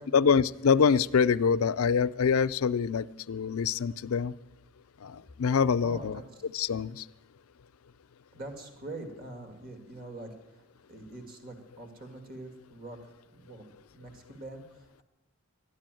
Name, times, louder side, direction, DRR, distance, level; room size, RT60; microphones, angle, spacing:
voice 1, 0.1-4.3 5.0-6.2 6.5-7.0, left 6 dB, 90° left, 13 dB, 0.5 m, -25 dB
voice 2, 5.8-6.4 8.3-13.6 13.9-15.0, right 2 dB, 45° right, 4 dB, 2.3 m, -44 dB
12.5 x 11.5 x 9.1 m, 1.0 s
head